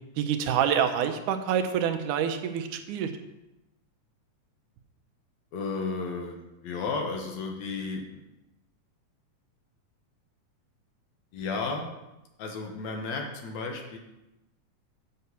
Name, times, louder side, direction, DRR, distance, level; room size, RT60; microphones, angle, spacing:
voice 1, 0.2-3.1, right 8 dB, 80° right, 6 dB, 2.2 m, -27 dB
voice 2, 5.5-8.3 11.3-11.9 12.4-14.0, left 4 dB, 65° left, 2 dB, 2.2 m, -33 dB
8.0 x 5.6 x 6.9 m, 0.98 s
omnidirectional pair, 3.6 m